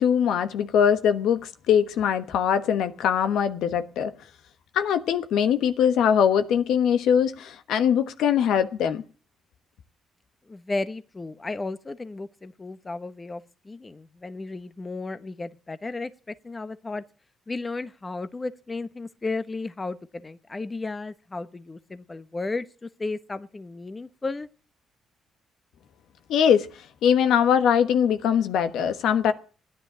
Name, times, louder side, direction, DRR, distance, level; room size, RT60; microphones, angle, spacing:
voice 1, 0.0-4.1 4.7-9.0 26.3-29.3, left 8 dB, 80° left, 1.2 m, -22 dB
voice 2, 10.5-17.0 17.5-24.5, left 3 dB, 25° left, 1.0 m, -34 dB
16.0 x 10.0 x 7.3 m
cardioid pair, 80°, 0 cm